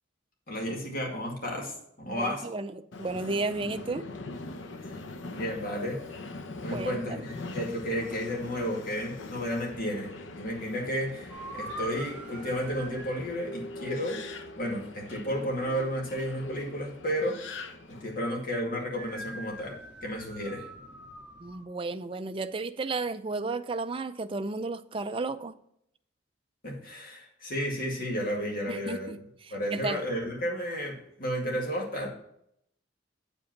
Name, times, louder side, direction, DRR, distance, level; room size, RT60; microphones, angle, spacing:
voice 1, 0.5-2.4 4.9-5.0 5.2-6.0 6.6-14.2 14.5-17.4 17.9-20.7 26.6-29.2 29.5-32.1, equal, 50° left, -1 dB, 2.2 m, -32 dB
voice 2, 2.1-4.1 6.7-7.2 21.4-25.5 28.7-30.0, right 3 dB, 30° right, 9 dB, 0.4 m, -33 dB
Subway metro underground, 2.9-18.2, left 2 dB, 90° left, 0.8 m, -42 dB
sound 1, 11.3-13.3 18.9-21.6, right 1 dB, 5° right, 1.8 m, -43 dB
8.2 x 5.3 x 5.9 m, 0.72 s
head